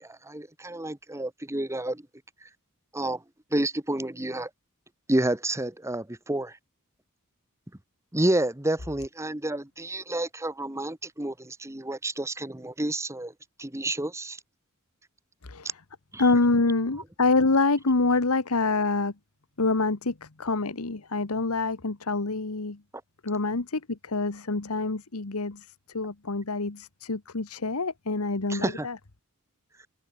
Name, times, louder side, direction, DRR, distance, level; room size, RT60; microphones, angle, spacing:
voice 1, 0.0-2.0 2.9-3.2 3.5-4.5 5.1-6.5 8.1-13.3 13.6-14.4 16.1-16.2 28.5-28.9, right 1 dB, 15° right, 1.4 m, -29 dB
voice 2, 15.4-15.8 16.2-19.1 19.6-22.8 23.2-29.0, left 3 dB, 85° left, 1.4 m, -26 dB
open air
head